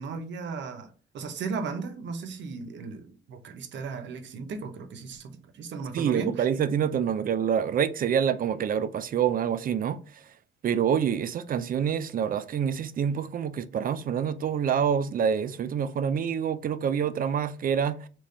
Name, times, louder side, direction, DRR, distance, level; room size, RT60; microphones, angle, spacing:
voice 1, 0.0-6.5, right 4 dB, 70° right, 0.8 m, -36 dB
voice 2, 5.9-10.3 10.6-18.1, right 8 dB, 45° right, 0.5 m, -27 dB
3.7 x 3.0 x 4.2 m
cardioid pair, 90°, 20 cm